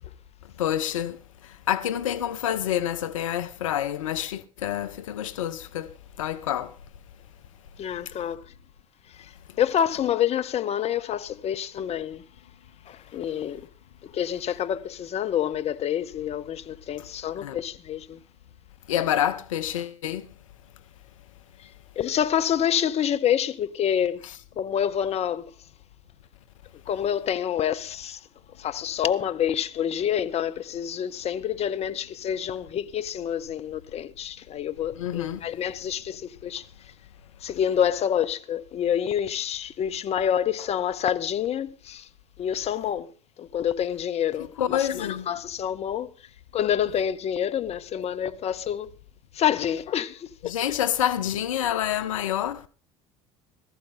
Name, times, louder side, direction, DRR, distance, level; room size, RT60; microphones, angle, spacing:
voice 1, 0.4-6.8 9.5-9.6 17.4-17.6 18.9-20.3 24.2-24.3 35.0-35.5 44.6-45.3 50.4-52.7, left 11 dB, 75° left, 0.6 m, -28 dB
voice 2, 7.8-8.4 9.1-9.3 9.6-12.2 12.9-13.6 14.0-18.2 22.0-24.3 24.6-25.5 26.9-28.3 28.6-36.6 37.4-42.1 42.4-43.1 43.4-46.1 46.5-48.9 49.3-50.6, left 9 dB, 40° left, 0.8 m, -27 dB
16.5 x 14.0 x 3.7 m
figure-of-eight pair, 65°, 17 cm